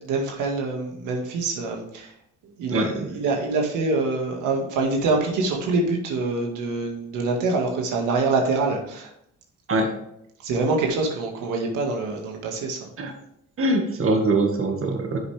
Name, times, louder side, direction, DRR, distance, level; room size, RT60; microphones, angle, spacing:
voice 1, 0.0-2.1 2.6-9.1 10.4-12.9, right 3 dB, 90° right, 1 dB, 1.9 m, -25 dB
voice 2, 2.7-3.1 9.7-9.9 13.0-13.1 13.6-15.2, right 2 dB, 45° right, 3 dB, 1.8 m, -23 dB
10.5 x 6.9 x 3.4 m, 0.75 s
cardioid pair, 90°, 30 cm